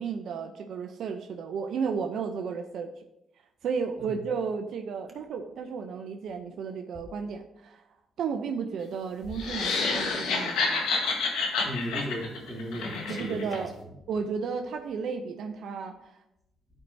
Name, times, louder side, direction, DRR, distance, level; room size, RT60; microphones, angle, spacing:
voice 1, 0.0-3.0 3.6-7.8 8.2-10.9 13.1-13.7 14.1-16.2, right 5 dB, 70° right, 6 dB, 0.5 m, -33 dB
sound 1, 9.4-13.6, left 4 dB, 90° left, 1.3 m, -29 dB
voice 2, 11.6-13.7, equal, 15° right, -1 dB, 1.9 m, -36 dB
11.5 x 4.6 x 2.7 m, 0.88 s
cardioid pair, 90°, 0 cm